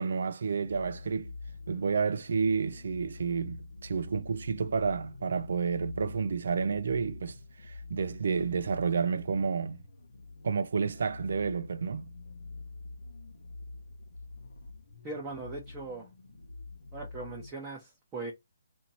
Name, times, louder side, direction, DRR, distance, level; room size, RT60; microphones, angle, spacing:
voice 1, 0.0-1.3 1.7-9.8 10.4-12.1, right 5 dB, 65° right, 0.4 m, -30 dB
sound 1, 0.6-17.5, left 3 dB, 70° left, 1.0 m, -46 dB
voice 2, 15.0-16.1 16.9-18.3, right 3 dB, 15° right, 0.8 m, -39 dB
2.8 x 2.7 x 4.1 m
hypercardioid pair, 170°, 0 cm